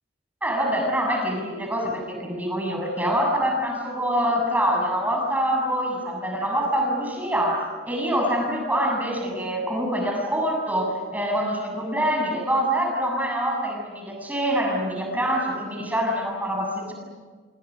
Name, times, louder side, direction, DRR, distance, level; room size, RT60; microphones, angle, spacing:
voice 1, 0.4-16.9, equal, 10° right, 0 dB, 7.2 m, -25 dB
28.5 x 26.5 x 6.4 m, 1.5 s
head